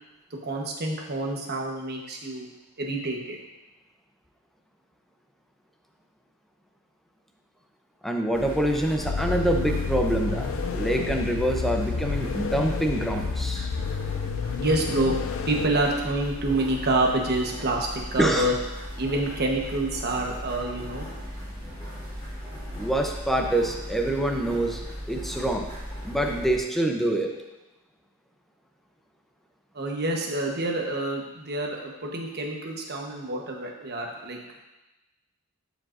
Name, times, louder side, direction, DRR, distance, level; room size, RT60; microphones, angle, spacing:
voice 1, 0.4-2.5 2.8-3.4 14.6-18.5 19.0-21.1 29.7-34.4, right 2 dB, 50° right, 0 dB, 1.1 m, -27 dB
voice 2, 8.0-13.7 18.2-18.5 22.8-24.8 25.1-25.7 26.0-27.3, right 1 dB, ahead, 2 dB, 0.6 m, -26 dB
sound 1, 8.3-26.6, equal, 20° left, 2.6 m, -37 dB
sound 2, 9.0-15.7, left 5 dB, 60° left, 0.4 m, -30 dB
11.5 x 5.0 x 2.5 m, 1.0 s
head